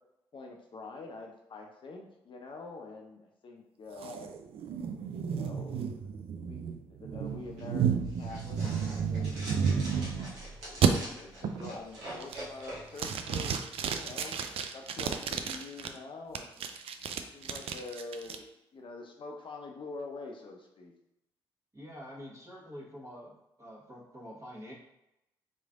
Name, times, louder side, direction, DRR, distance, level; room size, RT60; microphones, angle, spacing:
voice 1, 0.3-4.3 5.2-9.7 10.3-13.6 13.9-14.4 14.7-16.6 17.3-18.4 18.7-20.9, left 3 dB, 40° left, 2 dB, 0.5 m, -46 dB
sound 1, 4.0-10.3 10.8-10.9 11.4-11.8 12.2-12.6 13.0-15.9 16.3-18.4, right 7 dB, 50° right, 0.4 m, -32 dB
sound 2, 7.3-13.0, right 1 dB, 75° right, 1.1 m, -45 dB
voice 2, 21.7-24.7, equal, 25° right, -3 dB, 1.2 m, -46 dB
3.8 x 3.1 x 2.4 m, 0.87 s
hypercardioid pair, 40°, 12 cm